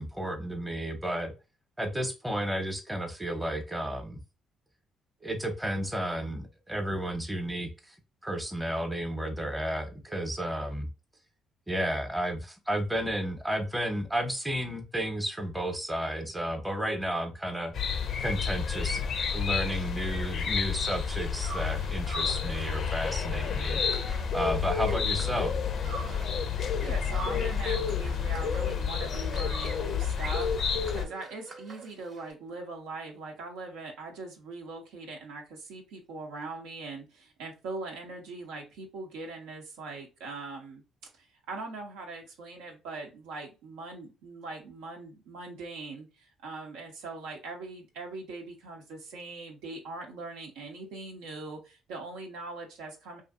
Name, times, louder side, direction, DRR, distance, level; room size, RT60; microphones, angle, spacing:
voice 1, 0.0-1.3 1.8-4.2 5.2-7.9 8.2-10.9 11.7-17.7 18.2-19.1 19.3-23.8 24.3-25.5, equal, 10° right, 5 dB, 0.8 m, -32 dB
sound 1, 17.7-31.1, left 7 dB, 60° left, 0.4 m, -30 dB
sound 2, 21.4-26.5 26.8-32.3, right 3 dB, 50° right, 0.8 m, -45 dB
voice 2, 26.8-40.8 41.2-53.2, right 3 dB, 85° right, 1 dB, 0.7 m, -41 dB
2.5 x 2.5 x 2.4 m, 0.29 s
supercardioid pair, 60°, 0 cm